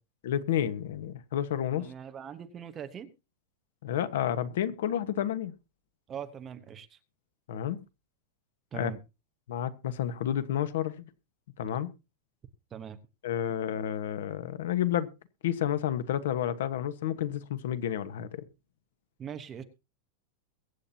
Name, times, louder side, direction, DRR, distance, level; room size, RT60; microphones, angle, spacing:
voice 1, 0.2-1.9 3.8-5.5 7.5-7.8 8.7-8.9 9.5-11.0 11.6-11.9 13.2-15.1 15.4-18.4, left 10 dB, 80° left, 1.3 m, -30 dB
voice 2, 1.8-3.1 6.1-7.0 8.7-9.0 12.7-13.0 19.2-19.6, right 8 dB, 20° right, 1.0 m, -41 dB
22.5 x 8.7 x 2.8 m
supercardioid pair, 175°, 0 cm